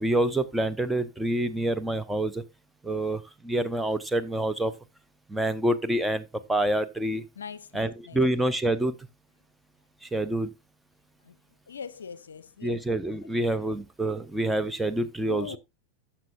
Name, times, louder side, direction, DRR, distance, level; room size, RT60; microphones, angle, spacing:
voice 1, 0.0-2.4 2.8-4.7 5.3-7.2 7.7-9.0 10.0-10.5 12.6-15.6, right 1 dB, 5° right, 0.5 m, -27 dB
voice 2, 7.4-8.2 11.2-11.4 11.7-12.8 13.3-13.4 15.3-15.6, left 6 dB, 70° left, 0.4 m, -41 dB
13.5 x 5.7 x 2.4 m
figure-of-eight pair, 90°, 0 cm